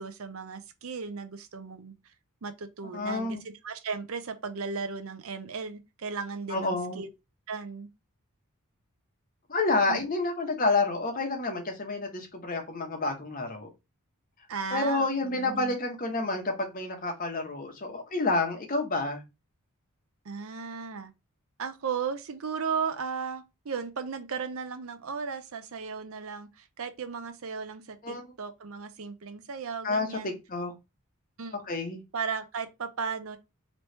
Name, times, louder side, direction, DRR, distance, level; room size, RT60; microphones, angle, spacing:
voice 1, 0.0-1.9 2.4-7.1 7.5-7.9 9.9-10.0 14.5-15.7 20.2-21.1 21.6-30.3 31.4-31.6 32.1-33.4, right 5 dB, 70° right, 0.6 m, -36 dB
voice 2, 2.9-3.4 6.5-7.0 9.5-13.7 14.7-19.2 28.0-28.2 29.8-30.7 31.7-32.0, left 3 dB, 40° left, 1.0 m, -29 dB
4.1 x 3.0 x 3.3 m
head